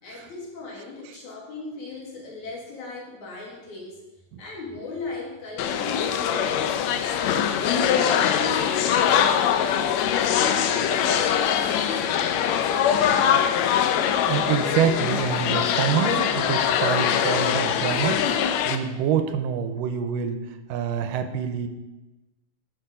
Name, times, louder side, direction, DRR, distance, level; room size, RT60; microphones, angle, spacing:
voice 1, 0.0-4.0 4.4-6.7 7.1-9.9 10.3-12.4, left 3 dB, 65° left, -3 dB, 3.4 m, -38 dB
sound 1, 5.6-18.8, left 8 dB, 80° left, 1.6 m, -22 dB
voice 2, 14.3-20.4 20.7-21.7, right 8 dB, 85° right, 8 dB, 2.3 m, -26 dB
11.5 x 6.2 x 5.0 m, 1.1 s
omnidirectional pair, 3.8 m